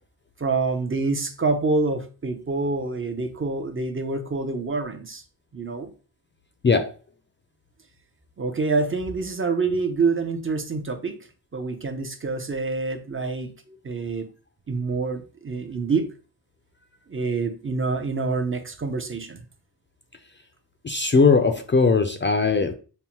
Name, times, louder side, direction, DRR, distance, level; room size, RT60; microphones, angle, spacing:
voice 1, 0.4-5.2 5.5-5.9 8.4-11.2 11.5-14.3 14.7-16.1 17.1-19.4, right 3 dB, 30° right, 6 dB, 0.5 m, -26 dB
voice 2, 20.8-22.7, left 4 dB, 30° left, 7 dB, 0.4 m, -19 dB
5.3 x 2.1 x 2.9 m, 0.36 s
wide cardioid pair, 100°, 41 cm